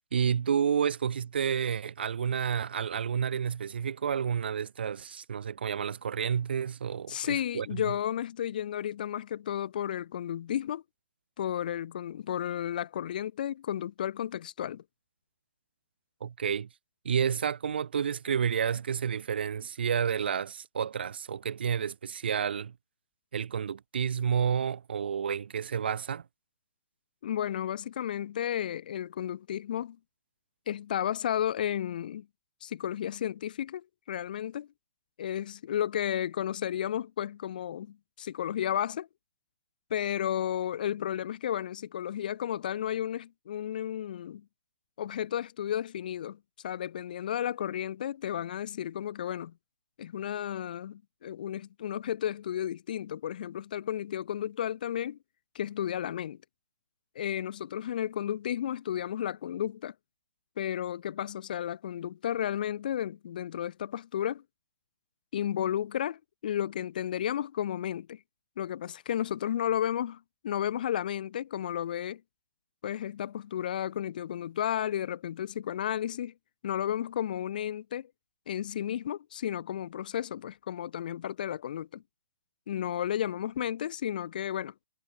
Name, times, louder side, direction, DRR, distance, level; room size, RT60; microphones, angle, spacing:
voice 1, 0.1-7.9 16.2-16.7 17.0-22.8 23.3-26.3, right 7 dB, 55° right, 0.4 m, -30 dB
voice 2, 7.1-10.8 11.4-14.8 27.2-30.0 30.7-32.3 32.6-34.7 35.2-39.1 39.9-44.4 45.0-46.4 46.6-49.5 50.0-55.2 55.5-56.4 57.2-59.9 60.6-64.4 65.3-68.2 68.6-72.2 72.8-76.3 76.6-78.1 78.5-82.0 82.7-84.7, left 10 dB, 40° left, 0.4 m, -33 dB
figure-of-eight pair, 125°, 7 cm